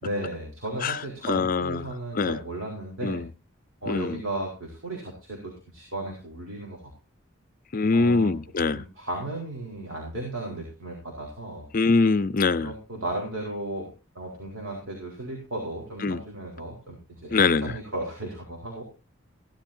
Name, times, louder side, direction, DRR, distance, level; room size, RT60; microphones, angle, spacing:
voice 1, 0.0-3.3 3.8-6.9 7.9-8.3 8.7-11.7 12.6-18.8, right 1 dB, 85° right, 4.2 m, -35 dB
voice 2, 1.3-1.9 2.2-2.4 3.0-3.3 3.9-4.2 7.7-8.8 11.7-12.7 16.0-16.2 17.3-17.7, left 4 dB, 45° left, 0.5 m, -23 dB
16.5 x 11.5 x 2.7 m
head